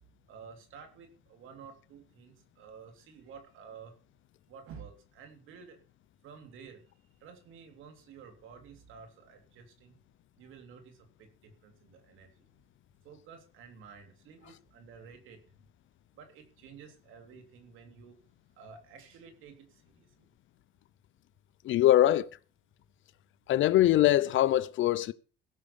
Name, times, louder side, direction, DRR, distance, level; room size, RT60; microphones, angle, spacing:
voice 1, 0.2-4.0 4.5-5.8 6.2-6.8 7.1-10.0 10.4-12.5 13.0-15.6 16.1-18.2 18.6-20.3, right 6 dB, 85° right, 3.3 m, -52 dB
voice 2, 21.6-22.3 23.5-25.1, left 13 dB, 75° left, 0.7 m, -23 dB
16.5 x 6.4 x 7.1 m
cardioid pair, 90°, 20 cm